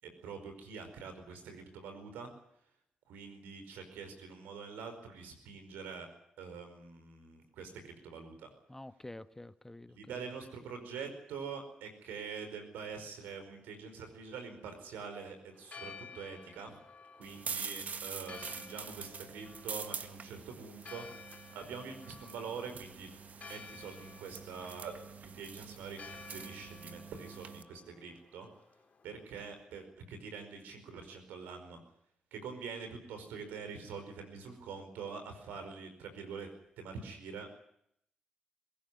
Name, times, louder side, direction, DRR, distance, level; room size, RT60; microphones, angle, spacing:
voice 1, 0.0-2.3 3.1-6.1 6.4-8.5 9.9-16.8 17.2-21.1 21.5-23.1 23.5-24.9 25.2-28.5 29.0-31.8 32.3-36.5 36.8-37.5, right 5 dB, 85° right, 7 dB, 5.0 m, -45 dB
voice 2, 8.7-10.2, left 1 dB, 15° left, 12 dB, 1.2 m, -48 dB
Church bell, 15.5-29.6, left 5 dB, 50° left, 4.1 m, -54 dB
sound 1, 17.2-27.6, right 6 dB, 55° right, 1.7 m, -45 dB
22.5 x 16.0 x 9.7 m, 0.72 s
supercardioid pair, 55°, 3 cm